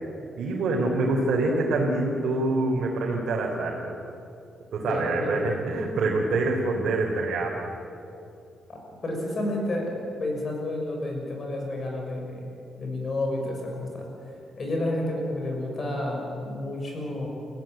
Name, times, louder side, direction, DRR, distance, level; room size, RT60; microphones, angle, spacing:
voice 1, 0.4-3.9 4.7-7.6, right 2 dB, 65° right, -3 dB, 4.1 m, -25 dB
voice 2, 4.8-5.3 8.7-9.9 10.2-12.4 12.8-14.1 14.6-17.3, left 1 dB, 30° left, 1 dB, 6.3 m, -30 dB
30.0 x 16.5 x 9.3 m, 2.6 s
wide cardioid pair, 170°, 0 cm